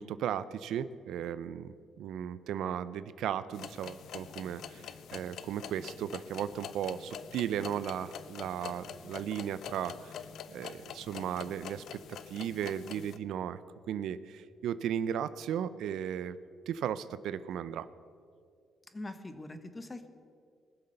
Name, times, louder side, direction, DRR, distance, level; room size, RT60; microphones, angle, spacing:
voice 1, 0.0-10.2 10.5-11.8 12.3-13.6 13.9-16.4 16.7-17.9, right 9 dB, 80° right, 15 dB, 0.5 m, -36 dB
sound 1, 3.5-13.2, left 8 dB, 70° left, 0.6 m, -46 dB
voice 2, 18.9-20.1, left 2 dB, 20° left, 9 dB, 1.2 m, -42 dB
20.0 x 6.9 x 6.6 m, 2.3 s
cardioid pair, 90°, 0 cm